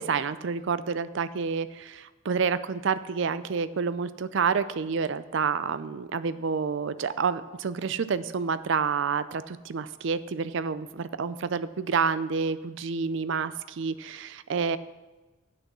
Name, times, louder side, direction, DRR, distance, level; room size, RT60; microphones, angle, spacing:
voice 1, 0.0-14.8, right 5 dB, 60° right, 14 dB, 0.4 m, -29 dB
8.6 x 6.6 x 6.1 m, 1.1 s
head